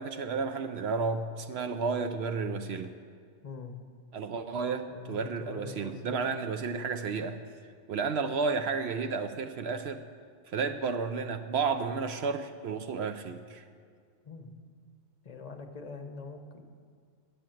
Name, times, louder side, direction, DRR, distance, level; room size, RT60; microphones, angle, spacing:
voice 1, 0.0-2.9 4.1-7.4 7.9-10.0 10.5-13.6, right 5 dB, 65° right, 8 dB, 0.8 m, -32 dB
voice 2, 3.4-3.7 4.9-6.2 14.2-14.5 15.2-16.6, left 4 dB, 40° left, 6 dB, 0.9 m, -43 dB
9.6 x 7.0 x 9.0 m, 2.2 s
omnidirectional pair, 1.2 m